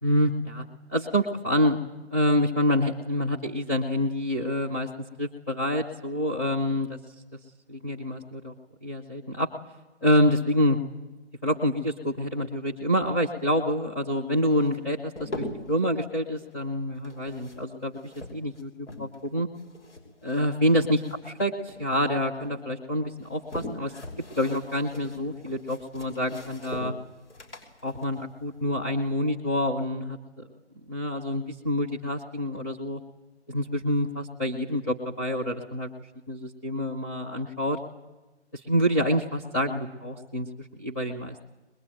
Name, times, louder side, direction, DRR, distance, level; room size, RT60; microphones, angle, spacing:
voice 1, 0.0-0.6 0.9-1.8 2.1-4.9 5.2-7.0 7.7-8.5 8.8-9.5 10.0-10.8 11.4-19.5 20.2-23.9 24.4-26.9 27.8-30.5 30.9-33.0 33.5-35.9 36.3-37.8 38.5-41.4, left 1 dB, 15° left, -2 dB, 0.8 m, -27 dB
sound 1, 14.5-15.8 16.9-19.3 19.6-21.4 21.7-22.6 23.1-29.2, left 1 dB, 80° left, 5.9 m, -42 dB
23.0 x 21.5 x 9.2 m, 1.1 s
figure-of-eight pair, 160°, 35 cm